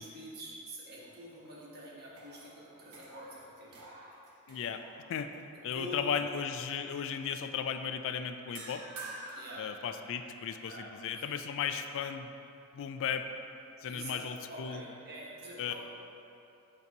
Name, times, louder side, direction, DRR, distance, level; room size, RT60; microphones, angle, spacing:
voice 1, 0.0-3.8 5.7-6.2 9.3-9.7 10.6-11.2 13.9-15.7, right 1 dB, 45° right, -5 dB, 1.4 m, -46 dB
sound 1, 1.0-1.7 2.1-5.4 5.8-6.1 8.5-10.5, right 2 dB, 80° right, 1.0 m, -49 dB
voice 2, 4.5-4.8 5.1-5.3 5.6-8.8 9.6-12.3 12.7-13.3 13.8-14.8 15.6-15.7, left 7 dB, 60° left, 8 dB, 0.3 m, -35 dB
8.3 x 3.0 x 5.2 m, 2.8 s
head